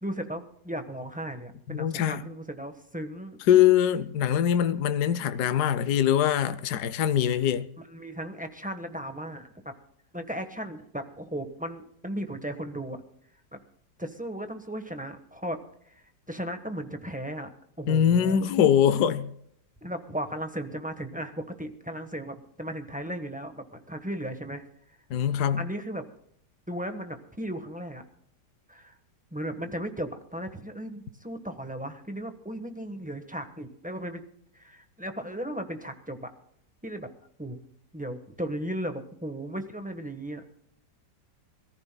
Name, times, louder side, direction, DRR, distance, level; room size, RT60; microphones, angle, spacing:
voice 1, 0.0-3.4 7.8-9.7 10.1-13.0 13.5-13.6 14.0-15.6 15.9-17.5 17.8-18.4 19.8-24.6 25.6-26.0 26.7-28.0 28.7-29.0 29.3-34.2 34.5-36.3 36.8-37.1 37.4-37.6 37.9-40.4, right 1 dB, 5° right, 1.0 m, -36 dB
voice 2, 1.7-2.2 3.5-7.7 17.9-19.3 25.1-25.6, left 9 dB, 65° left, 1.2 m, -23 dB
26.0 x 14.5 x 2.3 m
omnidirectional pair, 1.9 m